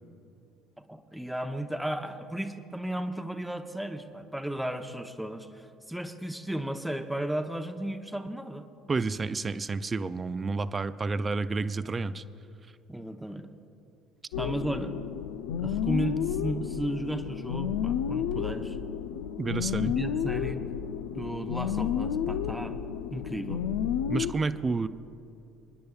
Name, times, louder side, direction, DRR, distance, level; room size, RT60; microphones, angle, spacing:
voice 1, 0.9-8.7 12.9-13.5 14.4-14.9 15.6-18.8 19.8-20.6 21.2-22.8 23.1-23.6, right 1 dB, 5° right, 7 dB, 0.8 m, -34 dB
voice 2, 8.9-12.2 19.4-19.9 24.1-24.9, right 4 dB, 25° right, 14 dB, 0.4 m, -30 dB
sound 1, 14.3-24.3, left 8 dB, 75° left, 0.5 m, -31 dB
29.5 x 10.0 x 2.4 m, 2.7 s
hypercardioid pair, 65°, 0 cm